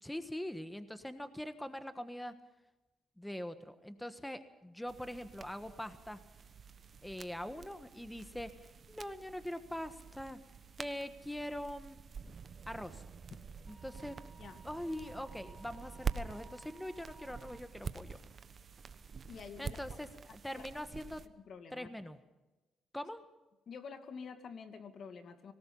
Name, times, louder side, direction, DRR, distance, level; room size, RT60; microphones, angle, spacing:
voice 1, 0.0-2.3 3.2-6.2 7.0-10.4 10.8-12.0 12.7-13.0 13.7-14.2 14.6-18.2 19.6-21.2 21.7-22.2 22.9-23.2, left 1 dB, 5° left, 10 dB, 1.4 m, -43 dB
sound 1, 4.9-21.3, right 5 dB, 45° right, 1.2 m, -47 dB
Wind instrument woodwind instrument, 13.7-17.6, right 3 dB, 15° right, 3.4 m, -58 dB
voice 2, 19.3-19.8 20.5-20.7 21.5-21.9 23.7-25.5, left 6 dB, 55° left, 8 dB, 2.3 m, -48 dB
25.0 x 19.0 x 5.5 m, 1.1 s
cardioid pair, 90°, 0 cm